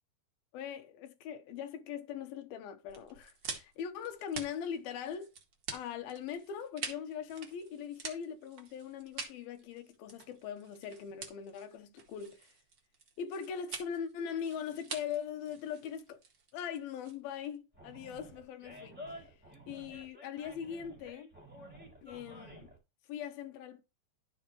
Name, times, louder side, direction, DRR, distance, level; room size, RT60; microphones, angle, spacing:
voice 1, 0.5-5.3 5.7-12.5 13.2-16.2 16.5-19.4 19.7-21.3 22.0-22.7 23.1-23.8, left 8 dB, 75° left, 2.7 m, -41 dB
sound 1, 2.9-17.6, right 5 dB, 50° right, 1.3 m, -46 dB
Animal, 17.7-22.8, equal, 5° right, 1.8 m, -51 dB
12.5 x 7.2 x 3.1 m
omnidirectional pair, 4.7 m